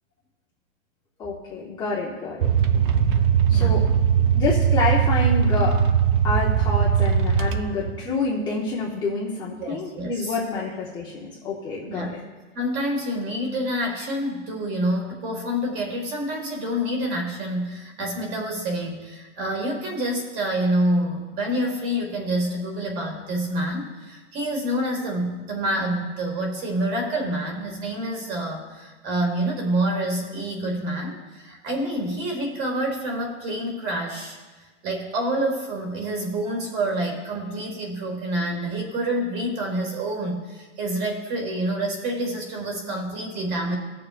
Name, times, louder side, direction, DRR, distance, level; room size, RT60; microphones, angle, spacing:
voice 1, 1.2-2.5 3.5-3.8 4.2-5.8 6.2-12.2, left 3 dB, 10° left, -5 dB, 0.7 m, -28 dB
sound 1, 2.4-8.0, right 8 dB, 45° right, 0.7 m, -20 dB
voice 2, 9.6-10.4 11.9-12.1 12.5-34.4 34.8-43.7, right 1 dB, 25° right, 1 dB, 1.9 m, -27 dB
19.5 x 6.6 x 2.5 m, 1.3 s
supercardioid pair, 160°, 36 cm